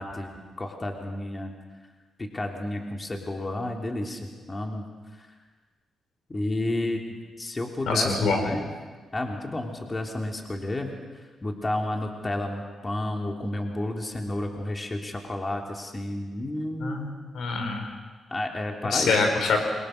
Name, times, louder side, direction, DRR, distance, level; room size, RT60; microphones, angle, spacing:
voice 1, 0.0-1.5 2.2-4.8 5.1-5.3 6.3-7.0 7.4-8.7 9.1-17.1 18.3-19.2, left 1 dB, 25° left, 2 dB, 3.3 m, -31 dB
voice 2, 7.9-8.4 16.8-17.1 17.3-17.9 18.9-19.6, left 4 dB, 75° left, 4 dB, 4.9 m, -24 dB
28.0 x 23.5 x 6.7 m, 1.4 s
cardioid pair, 70°, 0 cm